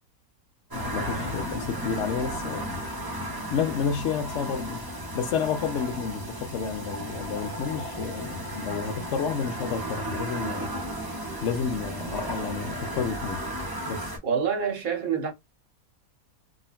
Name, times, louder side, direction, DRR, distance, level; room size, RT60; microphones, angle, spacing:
sound 1, 0.7-14.2, equal, 20° right, 0.7 m, -34 dB
voice 1, 0.9-2.8 3.5-4.8 5.1-10.7 11.4-13.4 13.9-14.1, left 6 dB, 60° left, 0.9 m, -30 dB
voice 2, 14.2-15.3, right 6 dB, 65° right, 1.5 m, -26 dB
3.8 x 2.1 x 2.3 m
omnidirectional pair, 1.6 m